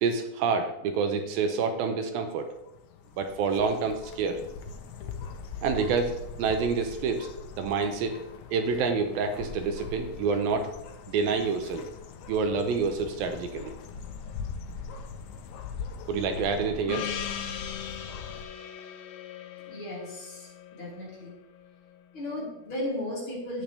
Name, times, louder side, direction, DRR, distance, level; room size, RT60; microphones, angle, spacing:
voice 1, 0.0-2.5 3.2-4.5 5.6-6.1 6.4-7.3 7.6-8.2 8.5-10.7 11.1-11.8 12.3-13.7 16.1-17.1, right 5 dB, 80° right, 6 dB, 2.7 m, -27 dB
sound 1, 2.3-18.4, left 5 dB, 75° left, 1.8 m, -41 dB
Gong, 16.9-21.7, left 9 dB, 90° left, 2.7 m, -39 dB
voice 2, 19.7-21.3 22.1-23.6, left 1 dB, 35° left, -5 dB, 3.4 m, -35 dB
11.5 x 9.1 x 3.3 m, 0.84 s
omnidirectional pair, 4.2 m